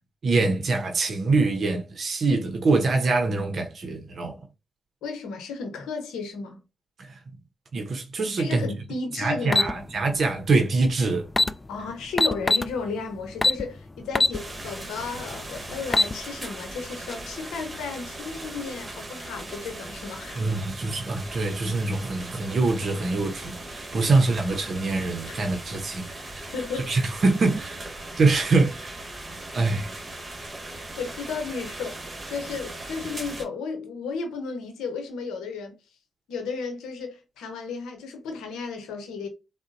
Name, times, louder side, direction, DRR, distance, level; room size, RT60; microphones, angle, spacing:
voice 1, 0.2-4.5 7.0-7.2 7.7-8.7 9.2-11.3 20.3-26.5 26.9-29.1 29.5-29.9, right 3 dB, 65° right, 0.7 m, -24 dB
voice 2, 5.0-6.6 8.4-9.8 11.7-20.5 24.0-24.1 25.3-25.4 26.5-26.9 29.5-29.7 31.0-32.0 32.3-35.7 36.3-39.3, left 4 dB, 85° left, 0.8 m, -34 dB
sound 1, 9.5-9.7 10.9-11.0 11.3-11.5 12.2-12.7 13.4-13.6 14.1-14.4 14.8-14.9 15.7-16.1, left 2 dB, 30° left, 0.3 m, -20 dB
sound 2, 14.3-33.4, right 2 dB, 35° right, 1.4 m, -39 dB
3.8 x 2.1 x 2.5 m
supercardioid pair, 40°, 0 cm